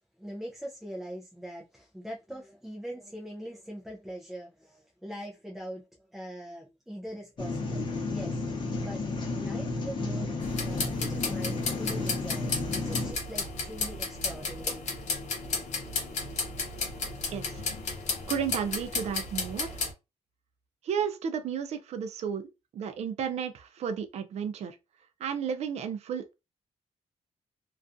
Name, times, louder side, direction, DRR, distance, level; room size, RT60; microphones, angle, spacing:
voice 1, 0.2-10.3 10.6-14.9, equal, ahead, 0.4 m, -42 dB
sound 1, 7.4-13.1, left 3 dB, 45° left, 0.7 m, -32 dB
sound 2, 10.4-19.9, left 4 dB, 80° left, 0.7 m, -34 dB
voice 2, 17.3-17.6 18.3-19.8 20.8-24.8 25.2-26.3, right 7 dB, 70° right, 0.4 m, -33 dB
2.4 x 2.3 x 2.4 m
cardioid pair, 130°, 12 cm